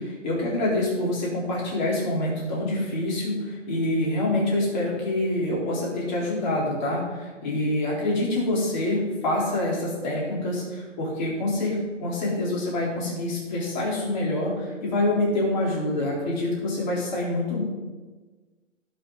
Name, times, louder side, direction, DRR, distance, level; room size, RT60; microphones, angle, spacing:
voice 1, 0.0-17.6, left 1 dB, 35° left, -4 dB, 3.8 m, -26 dB
16.0 x 6.3 x 4.1 m, 1.3 s
hypercardioid pair, 160°, 38 cm